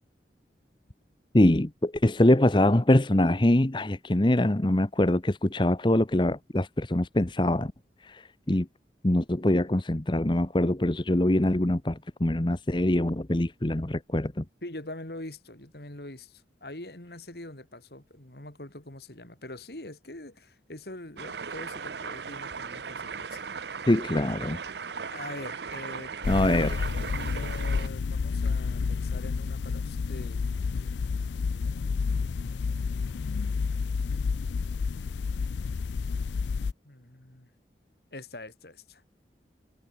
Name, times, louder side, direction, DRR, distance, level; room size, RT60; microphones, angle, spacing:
voice 1, 1.3-7.7 8.0-8.7 9.0-14.4 23.9-24.6 26.3-26.9, left 1 dB, 25° left, 1.0 m, -24 dB
voice 2, 14.6-23.5 25.1-26.2 27.1-30.9 31.6-32.9 36.8-37.5 38.1-39.0, left 1 dB, 65° left, 3.0 m, -44 dB
sound 1, 21.2-27.9, right 5 dB, 75° right, 0.8 m, -37 dB
sound 2, 26.2-36.7, left 5 dB, 85° left, 0.4 m, -30 dB
head